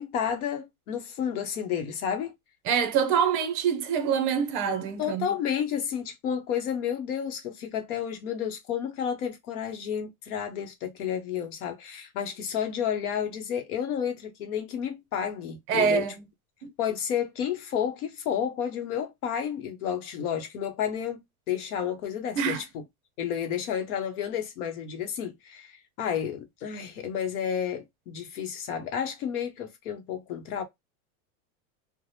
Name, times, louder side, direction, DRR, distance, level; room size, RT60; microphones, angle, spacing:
voice 1, 0.0-2.3 5.0-16.1 16.8-21.2 21.5-22.8 23.2-30.6, left 8 dB, 80° left, 0.9 m, -31 dB
voice 2, 2.6-5.3 15.7-16.2 16.6-16.7 22.4-22.6, right 7 dB, 30° right, 0.5 m, -25 dB
3.2 x 2.1 x 2.7 m
supercardioid pair, 155°, 44 cm